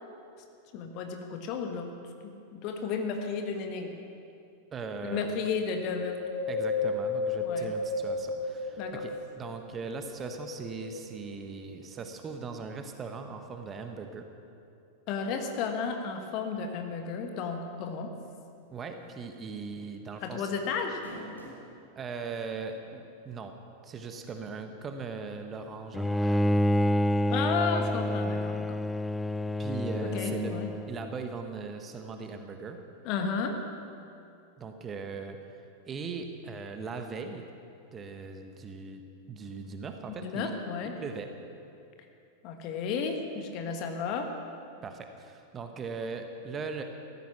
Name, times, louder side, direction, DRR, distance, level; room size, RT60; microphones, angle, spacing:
voice 1, 0.7-1.9 2.2-4.0 5.0-6.2 7.4-7.7 8.8-9.0 15.1-18.1 20.2-21.0 27.3-28.8 30.0-30.7 33.0-33.6 40.2-40.9 42.4-44.3, left 5 dB, 40° left, 4 dB, 1.6 m, -33 dB
voice 2, 4.7-5.3 6.5-14.2 18.7-20.5 21.9-23.5 23.8-26.6 29.6-30.5 30.9-32.8 34.6-35.4 35.9-37.5 37.9-39.0 39.3-40.5 40.8-41.3 44.8-46.8, right 4 dB, 25° right, 6 dB, 1.3 m, -39 dB
Wind, 6.0-9.6 10.1-11.4 11.9-12.0, left 3 dB, 65° left, 1.5 m, -33 dB
sound 1, 19.1-19.3 19.6-19.7 20.8-21.7 22.5-22.6 24.1-24.2, right 1 dB, 80° right, 3.2 m, -45 dB
Bowed string instrument, 25.9-31.2, left 1 dB, 5° left, 0.3 m, -28 dB
15.5 x 14.0 x 6.0 m, 2.6 s
figure-of-eight pair, 90°, 0 cm